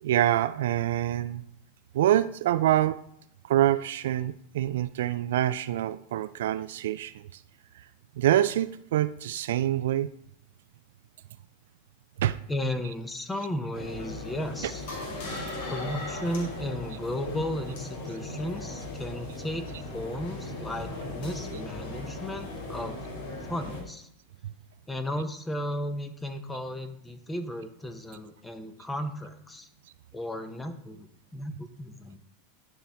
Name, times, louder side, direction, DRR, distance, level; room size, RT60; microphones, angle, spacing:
voice 1, 0.0-1.4 1.9-3.0 3.5-7.1 8.2-10.1 12.2-12.4 24.4-24.5, right 12 dB, 80° right, 14 dB, 0.3 m, -25 dB
voice 2, 12.5-14.9 15.6-19.7 19.9-23.0 23.5-24.1 24.9-29.7 30.1-31.1 31.3-32.2, left 1 dB, 10° left, 8 dB, 0.9 m, -34 dB
sound 1, 13.7-23.8, left 2 dB, 70° left, 2.0 m, -37 dB
11.0 x 4.3 x 3.5 m, 0.71 s
hypercardioid pair, 115°, 0 cm